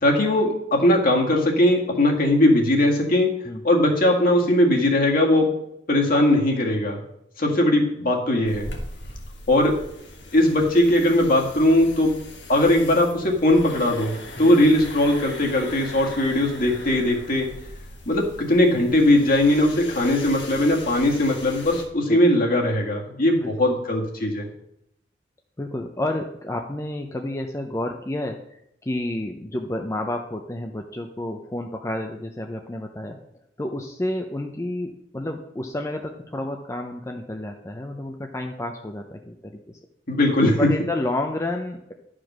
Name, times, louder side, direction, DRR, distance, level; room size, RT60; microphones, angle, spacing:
voice 1, 0.0-3.3 3.6-5.5 5.9-7.0 7.4-8.7 9.5-9.8 10.3-12.1 12.5-17.5 18.1-24.5 40.1-40.7, left 1 dB, 55° left, 0 dB, 2.0 m, -19 dB
sound 1, 8.4-21.8, left 1 dB, 85° left, 1.8 m, -40 dB
voice 2, 25.6-33.2 33.6-39.8 40.6-41.9, left 1 dB, 15° left, 3 dB, 0.6 m, -30 dB
11.0 x 5.0 x 6.1 m, 0.79 s
head